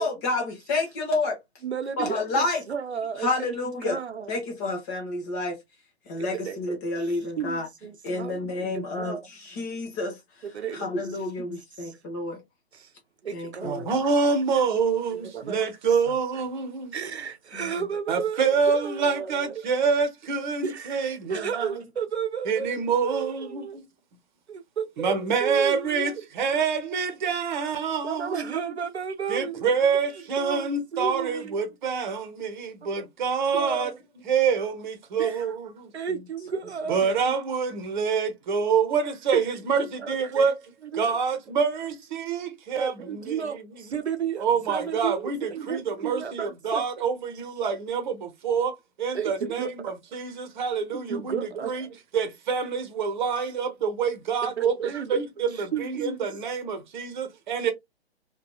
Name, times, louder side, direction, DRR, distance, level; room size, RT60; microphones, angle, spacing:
voice 1, 0.0-1.4 2.0-2.6 3.2-4.0 4.3-5.6 6.1-7.7 8.0-10.2 10.7-12.4 13.3-13.9 17.5-17.7, left 2 dB, 15° left, 0.4 m, -29 dB
voice 2, 1.6-3.6 3.8-4.3 6.2-9.6 10.4-11.5 11.8-12.0 12.7-12.9 13.2-13.9 15.1-15.6 16.1-16.2 16.9-19.6 20.6-21.0 21.3-23.8 24.5-26.3 28.0-29.7 30.1-31.6 32.9-33.0 33.5-34.0 35.2-35.5 35.9-37.1 39.3-39.4 39.8-40.5 40.8-41.2 42.7-46.8 49.1-49.7 51.1-51.7 54.4-55.2 55.5-56.0, right 7 dB, 90° right, 0.6 m, -33 dB
voice 3, 13.6-16.9 18.1-21.8 22.5-23.8 25.0-28.6 29.3-33.9 34.3-35.9 36.9-40.6 40.9-43.6 44.4-51.9 52.1-57.7, right 5 dB, 45° right, 0.8 m, -26 dB
2.7 x 2.3 x 2.3 m
figure-of-eight pair, 130°, 32 cm